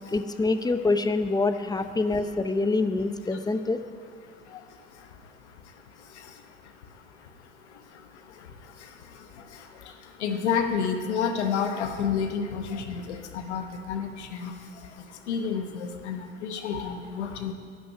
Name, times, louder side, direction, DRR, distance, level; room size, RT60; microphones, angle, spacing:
voice 1, 0.1-3.8, left 3 dB, 10° left, 9 dB, 0.8 m, -25 dB
voice 2, 4.2-17.5, left 6 dB, 90° left, 6 dB, 1.0 m, -32 dB
12.0 x 6.0 x 9.4 m, 2.2 s
hypercardioid pair, 65°, 33 cm